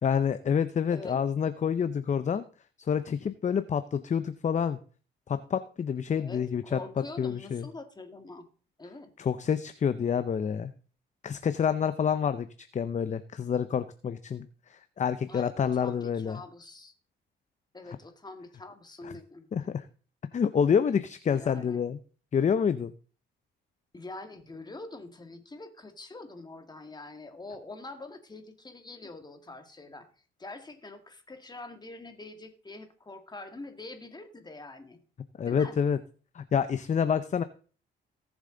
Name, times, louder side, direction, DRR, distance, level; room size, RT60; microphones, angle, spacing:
voice 1, 0.0-2.5 2.8-4.8 5.3-6.8 7.2-7.7 9.2-10.7 11.2-12.5 12.7-16.4 19.0-19.1 19.5-19.8 20.3-22.0 22.3-22.9 35.4-36.0 36.3-37.4, left 7 dB, 35° left, 11 dB, 0.7 m, -28 dB
voice 2, 0.9-1.2 6.2-8.5 8.8-9.1 15.3-16.9 17.7-19.5 21.3-21.8 23.9-30.1 30.4-35.0 35.5-35.8, left 2 dB, 20° left, 7 dB, 2.0 m, -44 dB
18.0 x 7.2 x 3.9 m, 0.41 s
cardioid pair, 90°, 20 cm